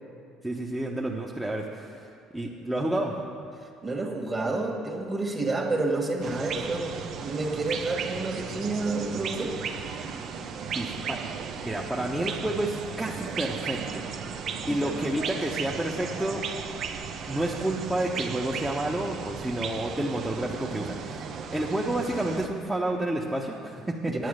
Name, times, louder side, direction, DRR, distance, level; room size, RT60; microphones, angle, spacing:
voice 1, 0.4-3.1 10.8-11.2 11.6-14.0 14.7-16.4 17.3-21.2 21.5-24.3, right 1 dB, 10° right, -3 dB, 0.9 m, -30 dB
voice 2, 3.8-9.6 14.7-15.1 24.1-24.3, right 2 dB, 25° right, 2 dB, 1.7 m, -29 dB
sound 1, 6.2-22.5, right 6 dB, 55° right, 0.8 m, -35 dB
9.3 x 8.3 x 6.5 m, 2.5 s
supercardioid pair, 85°, 0 cm